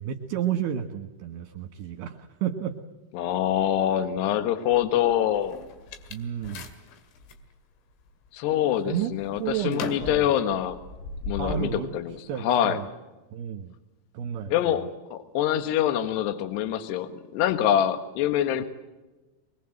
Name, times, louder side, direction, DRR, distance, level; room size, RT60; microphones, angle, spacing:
voice 1, 0.0-2.8 6.1-6.7 8.9-9.1 9.4-10.3 11.4-11.9 12.3-12.9 13.3-13.7 14.1-14.5 18.6-18.7, right 9 dB, 65° right, 6 dB, 2.9 m, -31 dB
voice 2, 3.1-5.6 8.3-10.8 11.3-12.8 14.5-18.6, left 11 dB, 65° left, 9 dB, 3.2 m, -25 dB
sound 1, 4.7-7.4 8.0-8.5 8.9-11.6, left 4 dB, 85° left, 4.7 m, -38 dB
24.5 x 22.5 x 7.9 m, 1.1 s
omnidirectional pair, 5.6 m